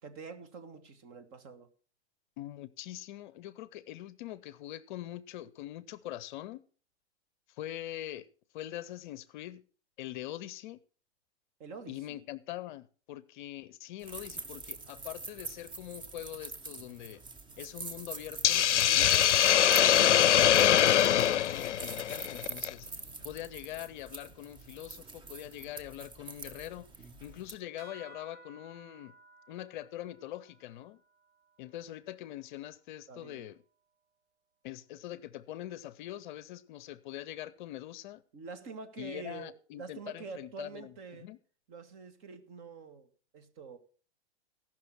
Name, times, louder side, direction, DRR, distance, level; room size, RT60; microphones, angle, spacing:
voice 1, 0.0-1.7 11.6-12.2 18.7-19.1 33.1-33.5 38.3-41.3 41.7-43.8, right 4 dB, 40° right, 1.9 m, -46 dB
voice 2, 2.4-6.6 7.6-8.3 8.5-9.6 10.0-10.8 11.9-17.2 17.6-18.7 19.0-22.9 23.2-29.1 29.5-31.0 31.6-33.6 34.6-38.2 39.0-40.9 41.2-41.4, left 13 dB, 45° left, 0.6 m, -43 dB
sound 1, 14.0-27.6, right 3 dB, 15° right, 0.8 m, -45 dB
Hiss, 18.4-22.7, left 11 dB, 85° left, 0.5 m, -23 dB
sound 2, 27.8-32.7, right 1 dB, 85° right, 2.5 m, -57 dB
16.0 x 5.9 x 6.1 m
hypercardioid pair, 115°, 34 cm